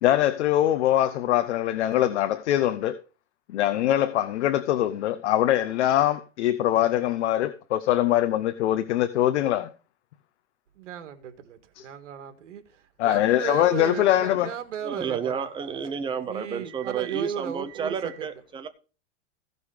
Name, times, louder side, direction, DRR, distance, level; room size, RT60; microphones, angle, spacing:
voice 1, 0.0-2.9 3.5-9.7 11.8-11.9 13.0-14.5, left 12 dB, 70° left, 1.0 m, -23 dB
voice 2, 10.8-18.3, right 10 dB, 85° right, 1.9 m, -36 dB
voice 3, 14.8-18.7, right 6 dB, 15° right, 0.7 m, -31 dB
15.5 x 5.4 x 4.9 m
supercardioid pair, 150°, 36 cm